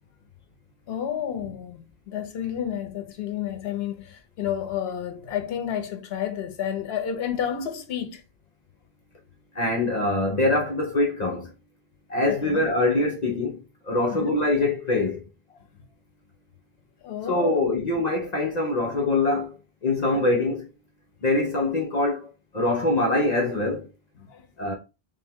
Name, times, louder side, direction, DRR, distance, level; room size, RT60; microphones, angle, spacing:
voice 1, 0.9-8.2 12.3-12.7 14.1-14.3 17.0-17.9 24.2-24.5, left 9 dB, 80° left, 1.0 m, -31 dB
voice 2, 9.5-11.5 12.1-15.2 17.3-20.6 21.2-23.9 24.6-24.7, left 2 dB, 45° left, 0.9 m, -24 dB
3.5 x 3.4 x 3.5 m
omnidirectional pair, 1.0 m